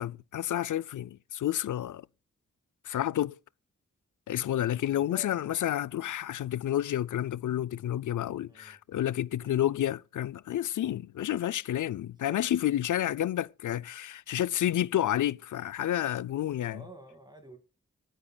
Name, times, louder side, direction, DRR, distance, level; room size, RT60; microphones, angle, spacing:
voice 1, 0.0-2.0 2.9-3.3 4.3-16.8, left 12 dB, 90° left, 0.5 m, -30 dB
voice 2, 4.9-5.4 8.5-8.8 9.4-9.6 12.2-12.4 16.6-17.6, equal, 15° right, 2.2 m, -50 dB
25.0 x 9.4 x 2.3 m
wide cardioid pair, 75°, 30 cm